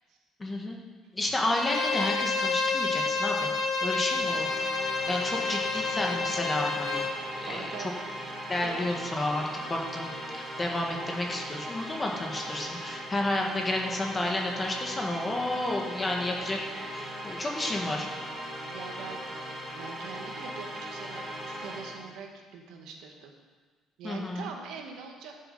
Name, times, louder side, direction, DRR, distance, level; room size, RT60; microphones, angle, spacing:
voice 1, 0.4-0.8 1.1-4.5 5.1-7.1 7.4-7.9 8.5-16.6 16.9-18.1 24.0-24.5, left 1 dB, 15° left, 0 dB, 1.5 m, -31 dB
Bowed string instrument, 1.5-7.2, left 4 dB, 40° left, 1.1 m, -29 dB
voice 2, 3.9-4.5 5.3-5.5 5.8-6.0 7.5-8.0 8.6-8.8 18.7-19.3 19.7-23.3 24.0-25.3, right 6 dB, 75° right, 2 dB, 1.7 m, -43 dB
sound 1, 4.1-22.1, equal, 20° right, 2.9 m, -39 dB
14.5 x 6.5 x 5.4 m, 1.5 s
cardioid pair, 150°, 0 cm